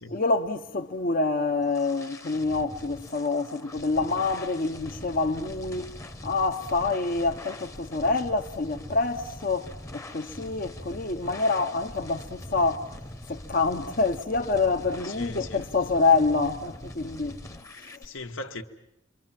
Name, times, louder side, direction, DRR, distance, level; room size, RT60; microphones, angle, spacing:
voice 1, 0.1-12.9 13.3-17.4, left 3 dB, 45° left, 0.9 m, -27 dB
sound 1, 1.1-18.1, left 1 dB, 15° left, 1.0 m, -43 dB
voice 2, 15.0-15.7 17.7-18.6, left 2 dB, 90° left, 1.7 m, -39 dB
27.5 x 23.5 x 7.5 m
head